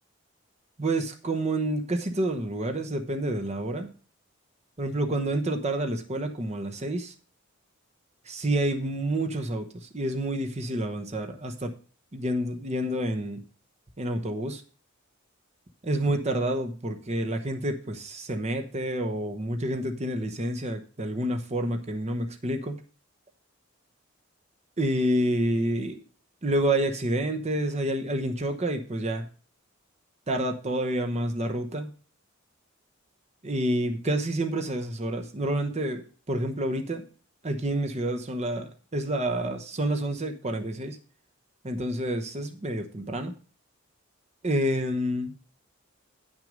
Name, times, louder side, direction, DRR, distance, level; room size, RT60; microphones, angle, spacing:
voice 1, 0.8-3.9 4.8-7.1 8.3-11.7 12.1-13.4 14.0-14.6 15.8-22.8 24.8-26.0 26.4-29.3 30.3-31.9 33.4-37.0 37.4-41.0 41.6-43.3 44.4-45.3, right 1 dB, 35° right, 5 dB, 0.9 m, -28 dB
9.3 x 6.3 x 5.1 m, 0.38 s
head